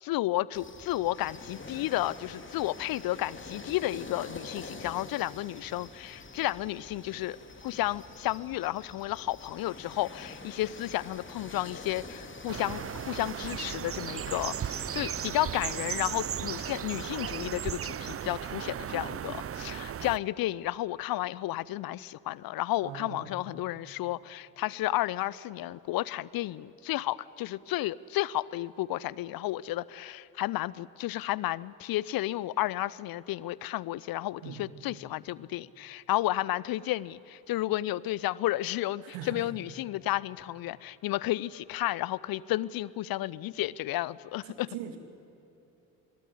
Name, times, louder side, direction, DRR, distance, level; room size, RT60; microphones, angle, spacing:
voice 1, 0.0-7.4 7.6-44.7, left 16 dB, 55° left, 21 dB, 0.7 m, -32 dB
sound 1, 0.5-17.4, left 3 dB, 25° left, 3.1 m, -47 dB
sound 2, 12.5-20.2, right 9 dB, 30° right, 0.7 m, -36 dB
voice 2, 22.8-23.4 34.4-34.6 39.0-39.5 44.4-45.0, right 9 dB, 70° right, 7 dB, 2.5 m, -41 dB
26.5 x 22.0 x 9.7 m, 2.9 s
figure-of-eight pair, 40°, 44 cm